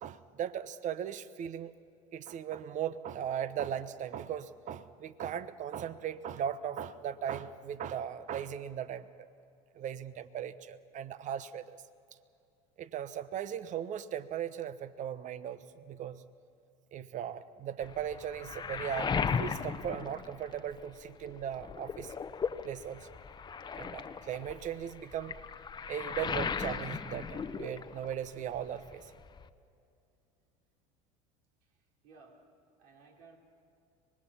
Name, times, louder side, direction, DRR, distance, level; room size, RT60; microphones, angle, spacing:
voice 1, 0.0-1.7 2.1-9.1 9.7-11.8 12.8-16.2 16.9-22.1 22.6-23.1 23.7-25.4 25.9-29.1, right 9 dB, 45° right, 14 dB, 1.0 m, -38 dB
Waves surf, 17.8-21.0 21.4-28.3 28.5-29.5, left 6 dB, 25° left, 0.9 m, -37 dB
voice 2, 31.6-32.5 32.8-33.4, right 4 dB, 70° right, 0 dB, 3.9 m, -58 dB
24.0 x 21.0 x 5.7 m, 2.5 s
hypercardioid pair, 80°, 18 cm